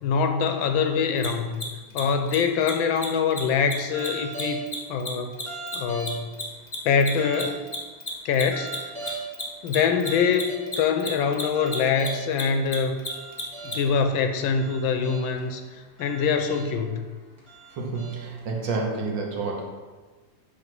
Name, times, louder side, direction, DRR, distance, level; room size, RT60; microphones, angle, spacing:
voice 1, 0.0-1.6 1.9-4.6 4.9-5.3 5.7-6.4 6.8-7.6 8.2-8.9 9.6-10.5 10.8-13.0 13.7-15.6 16.0-17.0, left 6 dB, 80° left, 7 dB, 1.5 m, -24 dB
Mechanisms, 1.2-1.3 1.5-1.6 1.9-2.0 2.3-2.4 2.6-2.7 3.0-3.1 3.3-3.4 3.7-6.4 6.7-13.7, left 3 dB, 25° left, 0.7 m, -33 dB
sound 1, 3.9-4.7 5.4-6.4 7.2-7.5 8.4-9.4 10.0-10.6 11.4-12.4 13.1-13.8 14.4-15.4 16.0-16.8 17.4-18.4, right 4 dB, 15° right, 2.2 m, -38 dB
voice 2, 17.7-19.7, right 3 dB, 70° right, 1 dB, 1.8 m, -29 dB
8.7 x 3.3 x 6.1 m, 1.3 s
omnidirectional pair, 2.1 m